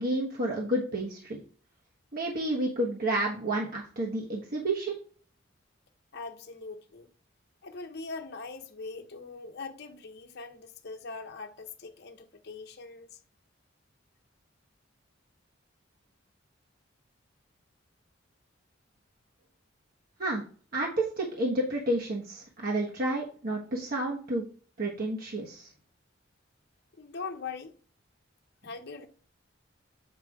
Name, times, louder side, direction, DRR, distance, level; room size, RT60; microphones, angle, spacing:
voice 1, 0.0-1.4 2.1-5.0 20.2-20.4 20.7-24.4 24.8-25.7, right 1 dB, 50° right, 1.3 m, -30 dB
voice 2, 6.1-7.1 7.6-13.1 27.0-27.7 28.6-29.1, left 4 dB, 55° left, 0.9 m, -41 dB
8.1 x 4.9 x 3.6 m
head